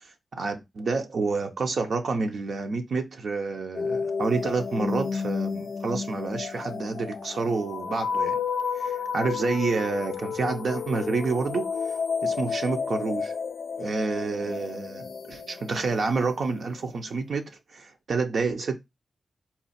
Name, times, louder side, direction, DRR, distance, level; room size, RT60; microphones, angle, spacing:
voice 1, 0.4-8.4 8.8-11.7 12.2-13.3 13.8-18.8, right 4 dB, 75° right, 0.8 m, -29 dB
sound 1, 3.7-16.5, left 6 dB, 85° left, 0.4 m, -31 dB
4.2 x 2.4 x 4.2 m
cardioid pair, 70°, 0 cm